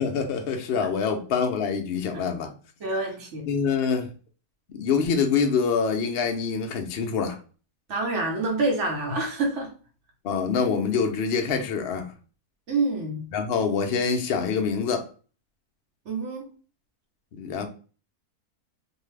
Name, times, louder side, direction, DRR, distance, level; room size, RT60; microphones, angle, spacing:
voice 1, 0.0-2.5 3.5-4.1 4.7-7.4 10.2-12.1 13.3-15.1 17.4-17.7, left 6 dB, 85° left, 0.5 m, -25 dB
voice 2, 2.8-3.5 7.9-9.7 12.7-13.3 16.1-16.5, right 2 dB, 55° right, 1.0 m, -27 dB
2.7 x 2.3 x 3.1 m
omnidirectional pair, 1.7 m